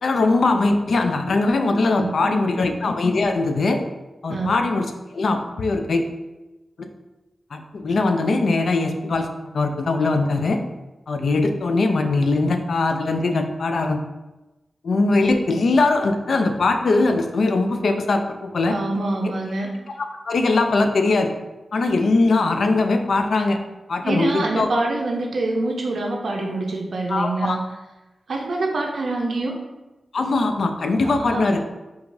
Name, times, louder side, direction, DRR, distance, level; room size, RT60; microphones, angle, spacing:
voice 1, 0.0-3.8 4.2-6.1 6.8-6.9 7.5-10.6 11.1-14.0 14.8-18.8 20.3-21.3 21.7-23.6 23.9-24.7 27.1-27.6 30.1-31.6, left 3 dB, 75° left, 6 dB, 0.3 m, -21 dB
voice 2, 2.0-2.6 4.3-4.5 18.7-19.7 24.0-27.6 28.3-29.6 31.0-31.6, right 2 dB, 70° right, 1 dB, 0.4 m, -25 dB
4.5 x 2.3 x 2.5 m, 1.1 s
wide cardioid pair, 75°, 0 cm